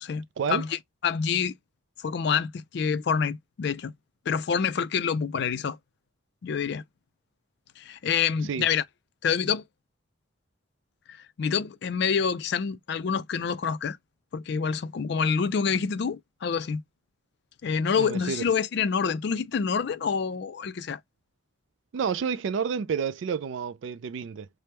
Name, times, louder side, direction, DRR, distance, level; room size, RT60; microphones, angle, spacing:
voice 1, 0.0-1.5 2.0-3.9 4.3-5.8 6.4-6.8 7.8-8.8 9.2-9.6 11.1-14.0 14.3-16.8 17.6-21.0, left 6 dB, 55° left, 0.3 m, -27 dB
voice 2, 18.0-18.4 21.9-24.5, right 6 dB, 65° right, 0.3 m, -29 dB
3.4 x 2.0 x 4.3 m
head